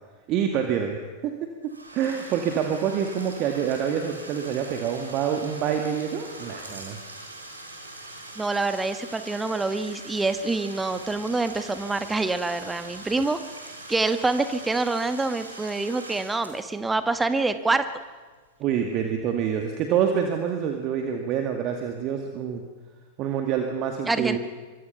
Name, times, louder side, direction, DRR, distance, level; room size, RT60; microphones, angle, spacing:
voice 1, 0.3-1.3 1.6-7.0 18.6-22.6 23.2-24.4, right 8 dB, 40° right, 4 dB, 2.1 m, -26 dB
Bathtub (filling or washing), 1.6-18.4, right 2 dB, 80° right, 4.1 m, -43 dB
voice 2, 8.4-13.4 13.9-17.9 24.1-24.4, right 3 dB, 10° right, 10 dB, 1.3 m, -26 dB
25.0 x 24.0 x 5.8 m, 1.4 s
figure-of-eight pair, 90°, 0 cm